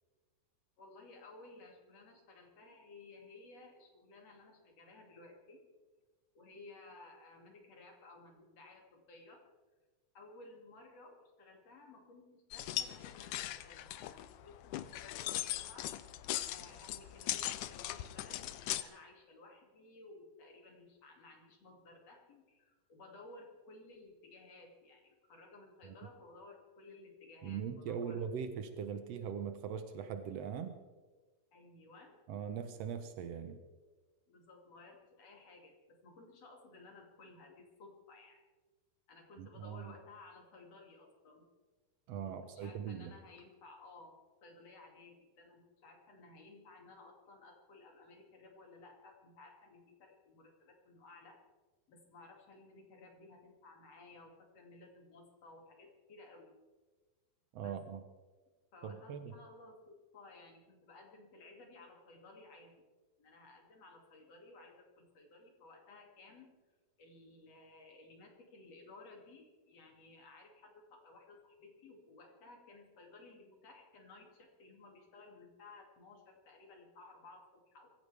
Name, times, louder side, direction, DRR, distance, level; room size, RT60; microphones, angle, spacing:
voice 1, 0.8-5.6 6.3-9.4 10.1-15.9 16.4-28.2 31.5-32.2 34.3-38.4 39.1-41.5 42.2-51.4 51.9-56.5 57.6-57.8 58.7-62.8 63.2-66.5 67.0-78.0, left 3 dB, 45° left, 1 dB, 3.3 m, -57 dB
sound 1, 12.5-18.8, left 14 dB, 80° left, 1.8 m, -40 dB
voice 2, 27.4-30.8 32.3-33.6 39.4-39.9 42.1-43.1 57.5-58.0 58.8-59.3, right 7 dB, 85° right, 8 dB, 1.4 m, -41 dB
24.0 x 16.0 x 3.4 m, 1.3 s
omnidirectional pair, 4.2 m